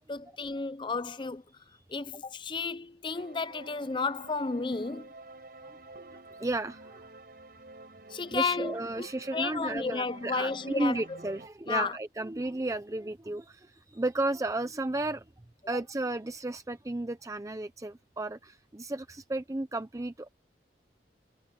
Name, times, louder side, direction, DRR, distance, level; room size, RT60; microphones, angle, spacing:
voice 1, 0.1-1.4 1.9-5.1 8.1-9.1 9.3-11.2 11.7-12.0, left 4 dB, 25° left, 0.6 m, -32 dB
sound 1, 3.1-11.5, right 2 dB, 55° right, 4.5 m, -50 dB
voice 2, 6.0-7.1 8.3-15.2 15.7-20.3, right 2 dB, 20° right, 0.5 m, -33 dB
head